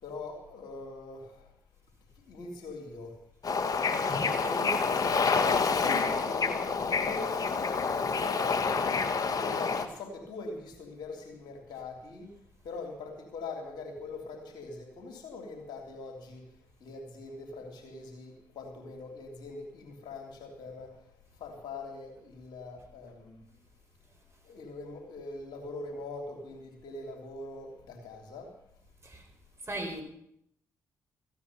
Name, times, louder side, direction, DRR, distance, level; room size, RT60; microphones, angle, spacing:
voice 1, 0.0-1.5 2.3-3.1 4.1-7.4 8.0-12.3 12.6-16.4 16.8-20.9 21.4-23.4 24.4-28.5, left 3 dB, 70° left, 1 dB, 3.3 m, -42 dB
Bird / Ocean, 3.4-9.9, left 5 dB, 55° left, 1.5 m, -28 dB
voice 2, 29.6-30.0, right 1 dB, 35° right, 4 dB, 4.5 m, -37 dB
15.0 x 9.3 x 7.1 m, 0.75 s
hypercardioid pair, 40°, 8 cm